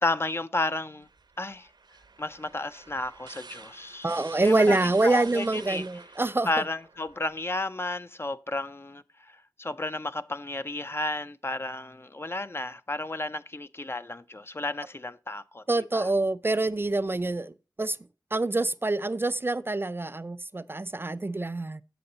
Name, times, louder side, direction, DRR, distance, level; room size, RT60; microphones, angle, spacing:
voice 1, 0.0-1.1 1.4-1.7 2.2-4.2 4.4-4.8 5.0-5.8 6.5-16.1, left 2 dB, 30° left, 0.5 m, -32 dB
sound 1, 1.0-7.5, right 4 dB, 75° right, 0.8 m, -49 dB
voice 2, 4.0-6.5 15.7-18.0 18.3-21.8, right 2 dB, 30° right, 0.4 m, -26 dB
7.7 x 7.0 x 3.9 m
wide cardioid pair, 50°, 8 cm